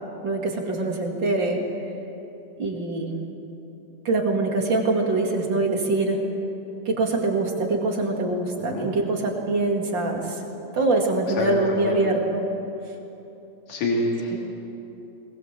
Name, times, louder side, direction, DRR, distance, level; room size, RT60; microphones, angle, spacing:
voice 1, 0.2-1.6 2.6-3.1 4.0-6.2 6.9-10.4 10.7-12.5 14.3-14.4, right 2 dB, 40° right, 1 dB, 2.7 m, -24 dB
voice 2, 11.3-12.0 13.7-14.4, left 1 dB, 85° left, -3 dB, 4.1 m, -27 dB
20.5 x 20.5 x 7.5 m, 3.0 s
omnidirectional pair, 3.3 m